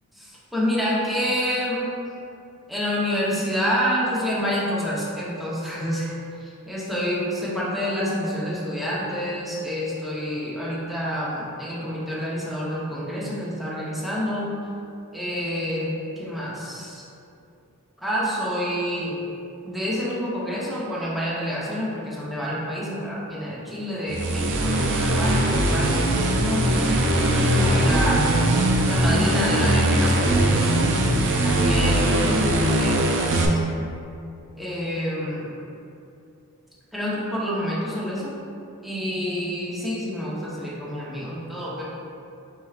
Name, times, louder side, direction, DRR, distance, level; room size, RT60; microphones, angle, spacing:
voice 1, 0.2-1.9 2.7-6.1 6.4-14.5 15.1-17.0 18.0-19.2 19.6-28.2 28.9-30.7 31.4-32.4 32.8-33.6 34.6-35.5 36.9-38.3 38.8-41.8, equal, ahead, -8 dB, 0.8 m, -28 dB
sound 1, 24.1-33.5, right 1 dB, 60° right, 0.5 m, -21 dB
4.5 x 4.5 x 2.4 m, 2.6 s
head